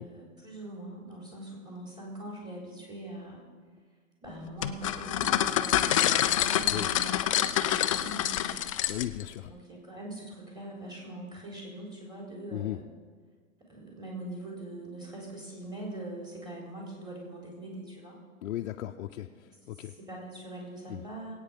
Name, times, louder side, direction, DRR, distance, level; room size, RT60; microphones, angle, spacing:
voice 1, 0.0-3.4 4.2-8.6 9.5-12.8 13.7-18.2 19.5-21.3, right 1 dB, 10° right, -2 dB, 4.3 m, -42 dB
sound 1, 4.6-9.3, left 11 dB, 25° left, 0.4 m, -27 dB
voice 2, 8.9-9.5 12.5-12.8 18.4-19.9 20.9-21.0, left 13 dB, 60° left, 3 dB, 0.8 m, -36 dB
22.0 x 8.9 x 5.2 m, 1.5 s
hypercardioid pair, 135°, 42 cm